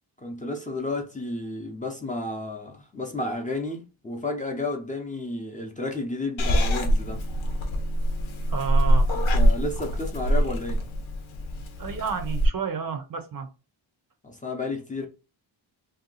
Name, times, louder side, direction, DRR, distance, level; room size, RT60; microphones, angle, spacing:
voice 1, 0.2-7.2 9.3-10.9 14.2-15.1, left 2 dB, 15° left, 0.6 m, -32 dB
Purr / Meow, 6.4-12.5, equal, 90° left, 0.8 m, -24 dB
voice 2, 8.5-9.1 11.8-13.5, right 6 dB, 50° right, 0.6 m, -31 dB
2.7 x 2.3 x 3.8 m
wide cardioid pair, 125°, 46 cm